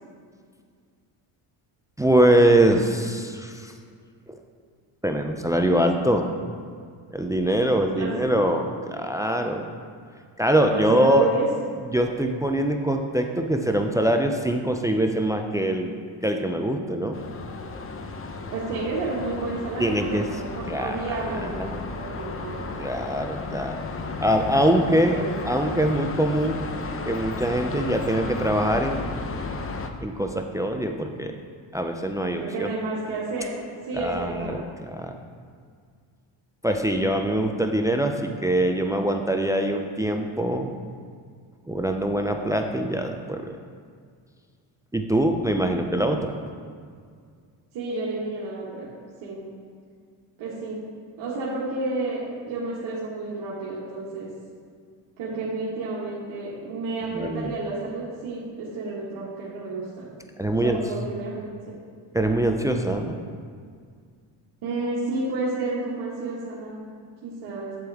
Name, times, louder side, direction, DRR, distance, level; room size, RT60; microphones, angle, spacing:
voice 1, 2.0-3.7 5.0-6.3 7.1-9.7 10.4-11.3 11.9-15.9 16.2-17.2 19.8-20.2 20.7-21.0 21.4-21.8 22.8-23.8 24.2-25.2 25.4-26.6 27.1-29.0 30.0-31.4 31.7-32.7 33.9-34.6 34.9-35.2 36.6-40.7 41.7-43.5 44.9-46.3 57.1-57.5 60.4-60.8 62.1-63.1, right 1 dB, 10° right, 4 dB, 0.3 m, -23 dB
voice 2, 8.0-8.5 10.7-11.5 18.5-22.6 24.0-24.4 24.8-25.3 32.4-33.5 33.8-34.6 47.7-48.9 49.2-49.4 50.4-50.8 51.2-54.3 55.2-60.1 60.6-61.7 64.6-66.8 67.2-67.7, right 3 dB, 85° right, -7 dB, 1.7 m, -31 dB
sound 1, 17.1-29.9, left 3 dB, 30° left, 0.7 m, -34 dB
8.7 x 7.7 x 3.5 m, 2.1 s
cardioid pair, 105°, 46 cm